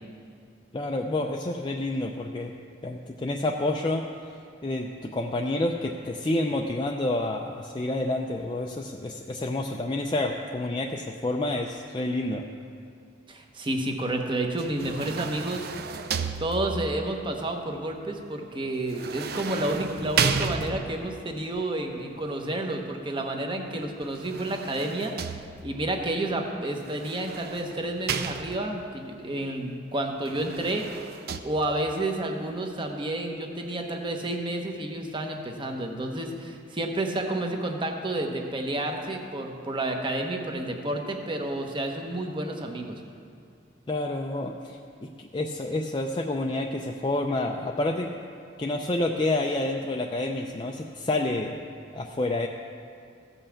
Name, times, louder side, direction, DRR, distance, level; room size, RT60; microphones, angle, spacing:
voice 1, 0.7-2.5 2.8-4.0 4.6-12.4 43.9-48.1 48.6-51.7 51.9-52.5, left 2 dB, 25° left, 1 dB, 0.5 m, -29 dB
voice 2, 13.3-15.7 16.4-25.1 25.6-31.0 31.4-43.0, right 1 dB, 25° right, 3 dB, 1.0 m, -30 dB
sound 1, 14.6-17.0 18.9-21.2 24.0-25.9 26.9-28.9 30.2-31.4, right 5 dB, 55° right, 0.5 m, -32 dB
15.0 x 5.6 x 7.1 m, 2.3 s
head